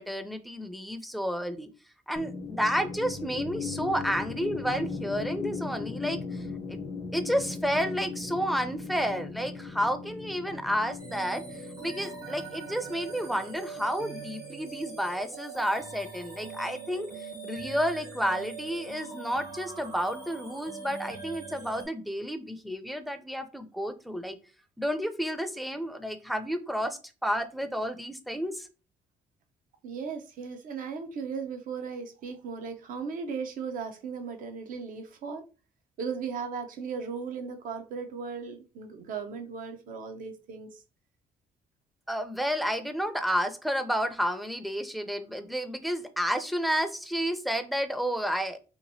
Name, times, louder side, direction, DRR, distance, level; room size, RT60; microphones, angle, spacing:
voice 1, 0.0-1.7 2.1-6.8 7.1-24.4 24.8-28.7 42.1-48.6, equal, ahead, 0.5 m, -31 dB
sound 1, 2.2-14.3, left 4 dB, 50° left, 0.7 m, -38 dB
sound 2, 11.0-21.9, right 4 dB, 80° right, 1.3 m, -42 dB
voice 2, 29.8-35.4 36.0-40.8, right 5 dB, 60° right, 0.6 m, -37 dB
2.9 x 2.6 x 2.7 m
supercardioid pair, 60°, 16 cm